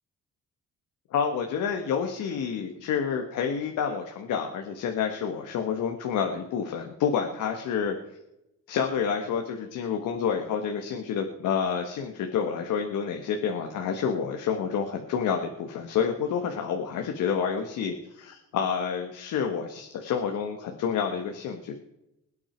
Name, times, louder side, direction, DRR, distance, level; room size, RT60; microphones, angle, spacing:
voice 1, 1.1-7.9 8.7-21.7, left 7 dB, 85° left, 4 dB, 1.6 m, -29 dB
21.5 x 8.7 x 4.6 m, 0.89 s
cardioid pair, 90°, 30 cm